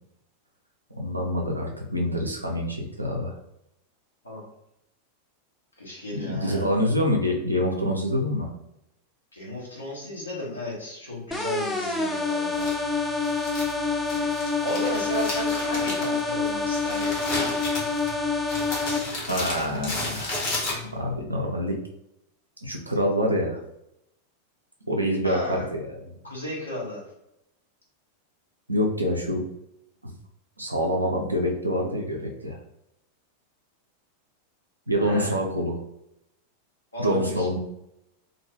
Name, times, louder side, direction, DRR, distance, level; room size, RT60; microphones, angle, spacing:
voice 1, 1.0-3.3 6.1-8.5 19.3-20.4 20.9-21.8 22.6-23.6 24.9-25.8 28.7-29.4 30.0-30.1 30.6-32.6 34.9-35.8 37.0-37.6, equal, 85° right, 1 dB, 0.5 m, -26 dB
voice 2, 5.8-6.7 9.3-12.7 14.1-14.3 14.6-17.2 25.2-25.7 26.2-27.0 34.9-35.4 36.9-37.5, equal, 80° left, -4 dB, 1.0 m, -34 dB
sound 1, 11.3-19.0, left 4 dB, 5° left, 0.4 m, -27 dB
Crumpling crinkling, 12.5-21.2, left 2 dB, 45° left, 1.0 m, -33 dB
2.5 x 2.2 x 3.0 m, 0.82 s
figure-of-eight pair, 90°, 0 cm